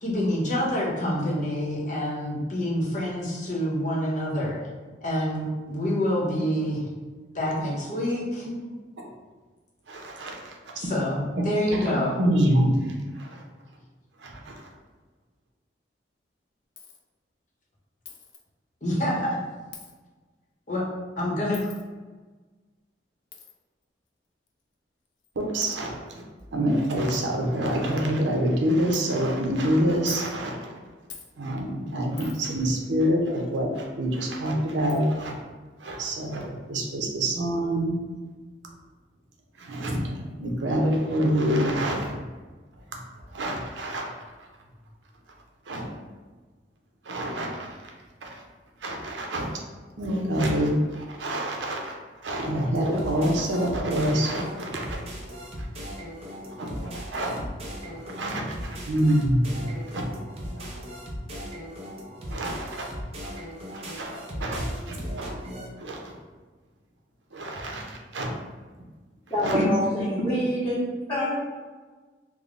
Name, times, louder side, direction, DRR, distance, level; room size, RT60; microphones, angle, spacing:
voice 1, 0.0-4.6 5.0-6.9 7.3-8.5 10.8-12.2 18.8-19.4 20.7-20.9 21.2-21.7, equal, 40° left, -4 dB, 0.8 m, -27 dB
voice 2, 1.6-1.9 9.0-9.1 9.9-10.6 11.7-13.4 14.2-14.7 25.4-26.2 26.5-30.7 31.4-35.3 35.8-38.0 39.6-42.1 43.3-44.1 45.7-46.0 47.0-47.9 48.2-48.4 48.8-49.6 50.0-51.9 52.2-55.0 55.6-55.7 56.6-57.4 57.8-60.0 60.5-60.8 62.3-62.9 63.7-65.3 65.8-66.1 67.3-68.3 69.4-69.7, right 1 dB, 80° right, 0 dB, 0.7 m, -27 dB
Coin (dropping), 16.8-17.0 18.1-18.4 19.7-19.9 21.5-21.8 23.3-23.5 24.5-24.6 25.2-25.3 25.6-25.8 26.4-26.5 26.8-26.9 27.1-27.3 27.7-28.0 28.9-29.1 29.9-30.3 31.1-31.3 32.2-32.5 34.2-34.3 34.9-35.0, left 7 dB, 80° left, 0.5 m, -43 dB
sound 1, 52.7-65.7, equal, 35° right, 0.6 m, -38 dB
voice 3, 69.3-71.4, equal, 10° left, -10 dB, 0.9 m, -26 dB
3.6 x 2.1 x 3.7 m, 1.3 s
head